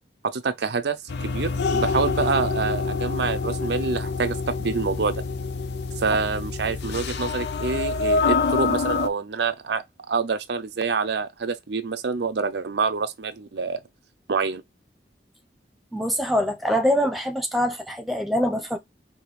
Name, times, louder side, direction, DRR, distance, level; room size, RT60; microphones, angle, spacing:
voice 1, 0.2-1.0 1.2-5.2 6.0-13.8 14.3-14.6, right 4 dB, 75° right, 0.6 m, -26 dB
sound 1, 1.1-9.1, left 4 dB, 70° left, 0.5 m, -26 dB
voice 2, 15.9-18.8, equal, ahead, 1.0 m, -24 dB
4.7 x 2.8 x 3.3 m
head